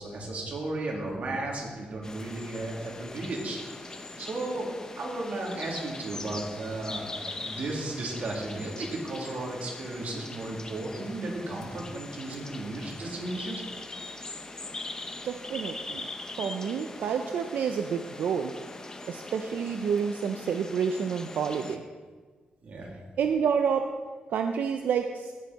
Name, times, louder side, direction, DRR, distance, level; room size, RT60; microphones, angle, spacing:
voice 1, 0.0-13.6 22.6-22.9, right 2 dB, 55° right, -2 dB, 2.7 m, -35 dB
sound 1, 2.0-21.8, left 2 dB, 20° left, 0.8 m, -42 dB
voice 2, 15.2-16.1 16.4-18.5 19.1-21.8 23.2-23.8 24.3-25.3, right 7 dB, 90° right, 5 dB, 0.5 m, -29 dB
17.5 x 6.5 x 4.1 m, 1.5 s
wide cardioid pair, 150°, 3 cm